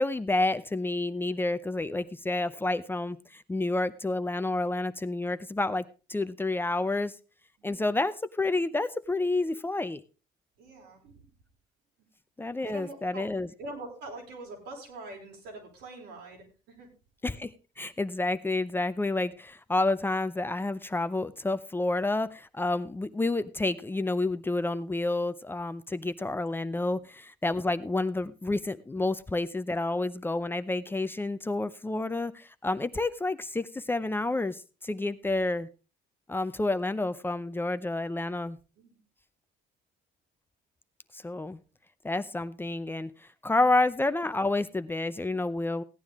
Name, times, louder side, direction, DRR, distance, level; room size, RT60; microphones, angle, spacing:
voice 1, 0.0-5.8 6.1-7.1 7.6-10.0 12.4-13.5 17.2-35.7 36.3-38.6 41.1-41.6 42.0-43.1 43.4-45.8, left 2 dB, 10° left, 13 dB, 0.6 m, -29 dB
voice 2, 10.6-11.3 12.6-16.9 26.9-27.0 38.8-39.0 45.3-45.4, right 2 dB, 90° right, 0 dB, 5.0 m, -44 dB
16.0 x 9.6 x 3.6 m, 0.33 s
cardioid pair, 110°, 17 cm